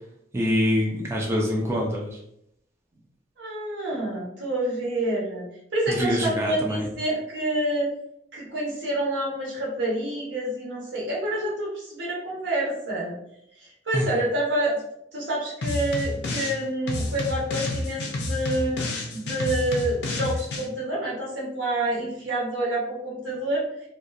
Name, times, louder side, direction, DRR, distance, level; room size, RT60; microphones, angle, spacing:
voice 1, 0.3-2.2 5.9-6.9 13.9-14.1, equal, 15° right, -2 dB, 0.3 m, -25 dB
voice 2, 3.4-7.9 8.3-13.1 13.6-14.8 15.1-18.8 19.1-23.7, right 1 dB, 85° right, -3 dB, 0.9 m, -28 dB
sound 1, 15.6-16.6 16.9-20.6, left 2 dB, 65° left, 0.5 m, -30 dB
2.6 x 2.2 x 2.3 m, 0.76 s
head